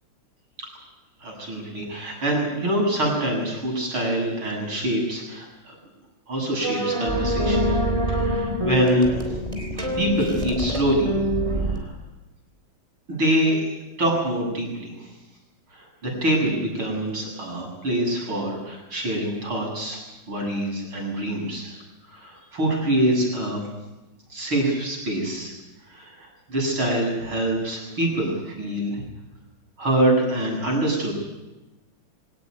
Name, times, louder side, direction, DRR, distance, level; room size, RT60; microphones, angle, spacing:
voice 1, 1.2-5.8 6.3-7.7 8.1-9.3 10.0-11.1 11.6-11.9 13.1-13.6 14.0-14.9 15.7-20.0 20.3-21.8 22.1-23.6 24.3-25.5 25.9-29.0 29.8-31.1, right 1 dB, 70° right, 0 dB, 8.8 m, -25 dB
sound 1, 6.6-11.8, equal, 15° right, 3.5 m, -25 dB
24.0 x 18.5 x 9.6 m, 1.0 s
omnidirectional pair, 2.4 m